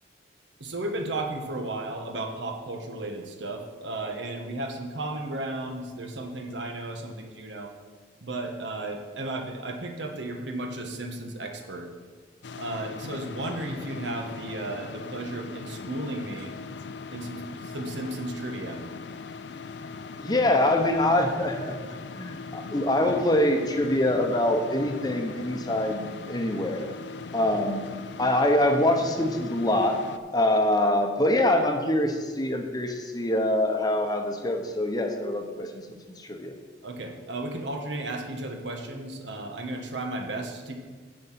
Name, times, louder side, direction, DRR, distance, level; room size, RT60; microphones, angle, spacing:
voice 1, 0.6-7.7 8.2-11.9 12.5-16.5 17.1-18.8 36.8-40.8, right 2 dB, 75° right, 4 dB, 1.3 m, -34 dB
sound 1, 12.4-30.2, left 4 dB, 70° left, 0.5 m, -40 dB
voice 2, 20.2-21.8 22.2-26.9 27.3-27.8 28.2-30.0 30.3-35.7 36.1-36.5, left 1 dB, 20° left, 4 dB, 0.9 m, -24 dB
9.4 x 6.7 x 5.9 m, 1.5 s
head